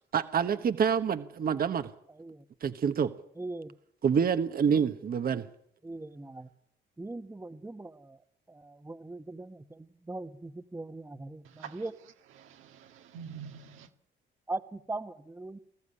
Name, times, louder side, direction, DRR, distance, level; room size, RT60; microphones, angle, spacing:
voice 1, 0.1-1.9 2.6-3.1 4.0-5.4, right 7 dB, 50° right, 1.2 m, -27 dB
voice 2, 3.4-3.7 5.8-6.5 7.0-8.2 8.5-11.9 14.5-15.6, right 2 dB, 10° right, 1.2 m, -40 dB
voice 3, 11.4-13.9, right 7 dB, 90° right, 2.1 m, -47 dB
21.0 x 14.5 x 9.9 m
cardioid pair, 90°, 20 cm